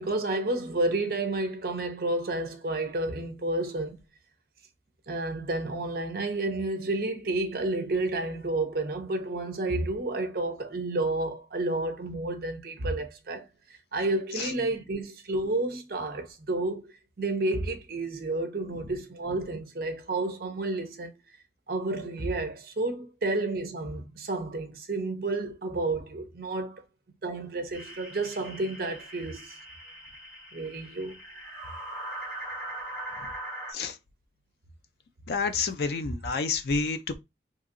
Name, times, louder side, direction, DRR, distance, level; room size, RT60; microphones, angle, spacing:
voice 1, 0.0-4.0 5.1-13.5 13.9-16.9 17.2-21.1 21.7-26.8 27.2-29.5 30.5-31.2, right 2 dB, 50° right, 0.6 m, -30 dB
sound 1, 27.7-33.7, right 1 dB, 5° right, 1.7 m, -40 dB
voice 2, 35.3-37.2, left 4 dB, 60° left, 0.4 m, -29 dB
2.8 x 2.7 x 2.5 m
head